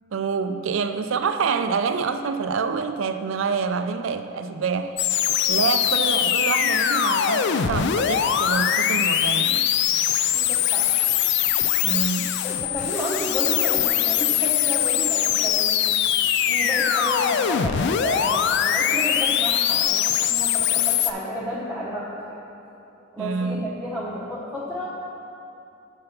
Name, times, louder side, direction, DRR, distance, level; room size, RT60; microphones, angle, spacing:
voice 1, 0.1-5.0 5.5-9.7 11.8-12.3 23.2-23.7, right 5 dB, 65° right, 9 dB, 0.4 m, -26 dB
sound 1, 5.0-21.1, left 9 dB, 55° left, 0.3 m, -22 dB
voice 2, 10.3-10.9 12.4-15.7 16.5-22.4 22.9-24.9, equal, 5° right, -8 dB, 0.8 m, -32 dB
6.7 x 5.3 x 5.6 m, 2.7 s
head